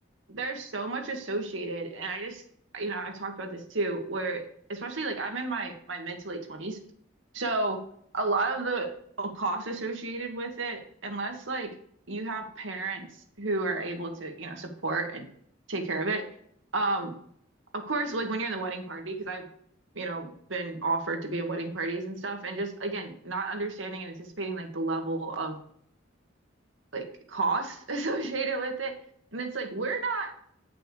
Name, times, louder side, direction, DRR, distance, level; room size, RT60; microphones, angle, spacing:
voice 1, 0.3-2.4 2.7-6.8 7.3-7.8 8.1-8.9 9.2-11.7 12.1-13.1 13.4-15.2 15.7-16.3 16.7-17.1 17.7-19.4 19.9-25.6 26.9-28.9 29.3-30.3, right 3 dB, 85° right, 4 dB, 1.6 m, -32 dB
8.2 x 6.0 x 4.8 m, 0.65 s
head